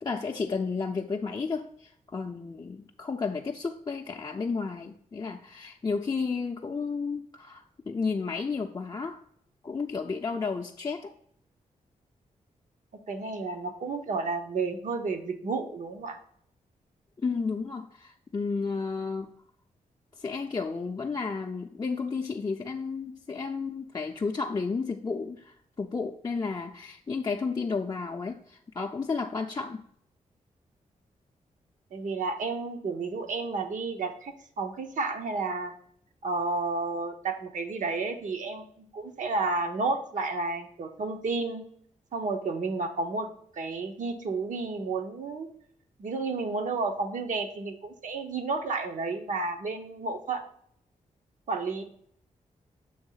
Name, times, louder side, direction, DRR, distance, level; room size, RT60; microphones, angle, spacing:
voice 1, 0.0-9.2 9.6-11.1 17.2-19.3 20.2-29.8, left 4 dB, 30° left, 1 dB, 0.5 m, -32 dB
voice 2, 13.1-16.2 31.9-35.7 36.2-41.6 42.1-43.3 43.6-45.5 46.0-50.4 51.5-51.8, right 3 dB, 65° right, 5 dB, 0.9 m, -31 dB
7.1 x 3.0 x 5.6 m, 0.66 s
cardioid pair, 95°, 14 cm